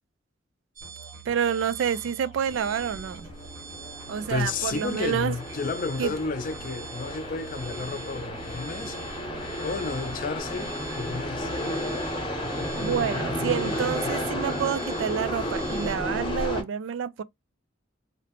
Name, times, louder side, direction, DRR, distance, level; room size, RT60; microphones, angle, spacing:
sound 1, 0.8-16.0, right 6 dB, 45° right, 0.7 m, -46 dB
Musical instrument, 0.8-10.4, right 3 dB, 90° right, 1.5 m, -47 dB
voice 1, 1.3-3.3 4.1-5.3 6.0-6.1 12.7-17.2, right 8 dB, 75° right, 0.3 m, -28 dB
sound 2, 2.5-16.6, left 1 dB, 25° left, 0.8 m, -33 dB
voice 2, 4.3-9.3 9.6-11.5, left 4 dB, 45° left, 0.4 m, -32 dB
2.7 x 2.0 x 2.8 m
head